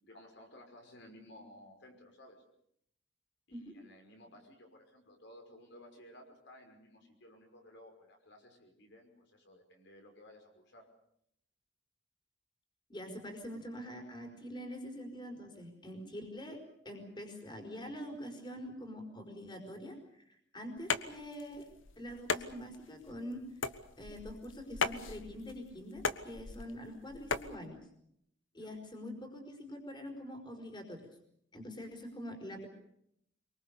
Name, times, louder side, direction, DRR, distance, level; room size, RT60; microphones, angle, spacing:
voice 1, 0.0-2.4 3.5-10.9 28.6-28.7, left 1 dB, 65° left, 3 dB, 5.7 m, -56 dB
voice 2, 12.9-16.6 16.8-21.7 22.0-23.4 24.0-27.8 28.5-31.0 31.5-32.7, equal, 25° left, 4 dB, 5.0 m, -45 dB
sound 1, 20.8-27.6, left 4 dB, 80° left, 1.3 m, -38 dB
25.5 x 23.5 x 6.9 m, 0.74 s
head